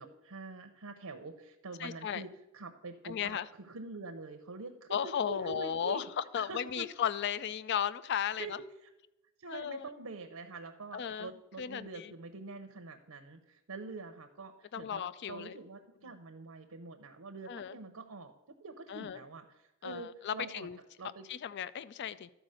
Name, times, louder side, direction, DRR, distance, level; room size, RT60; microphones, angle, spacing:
voice 1, 0.0-6.1 6.4-6.9 8.4-8.5 8.8-8.9 9.4-18.3 18.6-20.7 21.0-21.3, right 3 dB, 80° right, 6 dB, 0.7 m, -46 dB
voice 2, 1.8-2.2 3.0-3.5 4.9-8.6 9.5-9.9 10.9-11.3 11.6-12.1 14.7-15.6 17.5-17.7 18.9-19.2 19.8-20.8 21.3-22.3, left 8 dB, 50° left, 17 dB, 0.3 m, -35 dB
12.0 x 4.9 x 6.4 m, 0.96 s
head